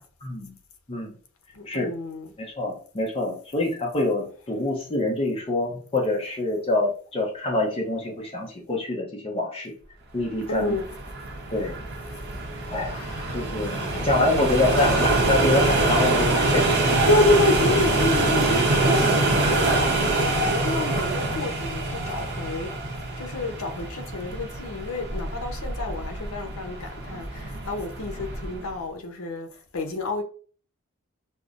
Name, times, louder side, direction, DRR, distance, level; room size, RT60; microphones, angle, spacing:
voice 1, 0.2-0.5 0.9-1.1 1.7-1.9 2.4-9.7 10.1-10.8 11.5-11.8 12.7-13.0 13.3-16.7, left 2 dB, 25° left, 0.6 m, -26 dB
voice 2, 1.5-2.3 10.5-10.8 12.9-14.9 17.1-22.7 23.2-29.5 29.7-30.2, left 2 dB, 75° left, 0.7 m, -29 dB
sound 1, 10.4-28.7, right 2 dB, 50° right, 0.7 m, -25 dB
5.3 x 2.0 x 2.4 m
head